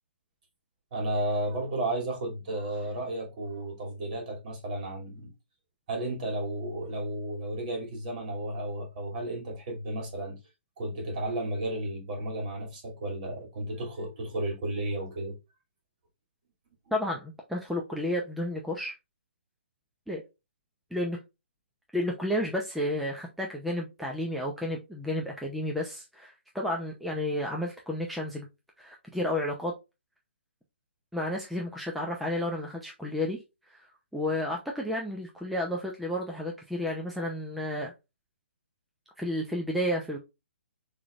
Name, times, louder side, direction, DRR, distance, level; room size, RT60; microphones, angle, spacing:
voice 1, 0.9-5.3 5.9-10.4 10.8-15.4, right 1 dB, 45° right, 2.7 m, -33 dB
voice 2, 16.9-18.9 20.1-20.2 20.9-21.2 21.9-28.5 28.8-29.7 31.1-33.4 33.7-33.9 34.1-37.9 39.2-40.2, left 1 dB, ahead, 0.6 m, -31 dB
5.8 x 3.3 x 2.4 m
hypercardioid pair, 145°, 6 cm